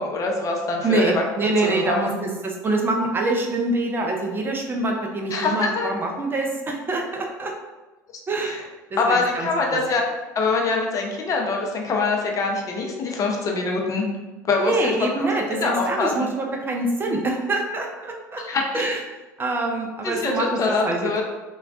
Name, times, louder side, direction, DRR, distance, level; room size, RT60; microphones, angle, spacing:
voice 1, 0.0-1.1 1.6-2.2 5.3-5.9 8.4-8.6 9.0-10.0 10.3-14.0 14.5-14.7 15.2-16.3 18.4-18.6 20.0-21.2, left 3 dB, 35° left, 0 dB, 0.6 m, -24 dB
voice 2, 0.8-7.5 8.3-8.6 8.9-9.8 14.6-18.4 18.7-19.0 19.4-21.2, right 2 dB, 20° right, 1 dB, 0.4 m, -25 dB
3.3 x 2.2 x 2.4 m, 1.2 s
figure-of-eight pair, 70°, 10 cm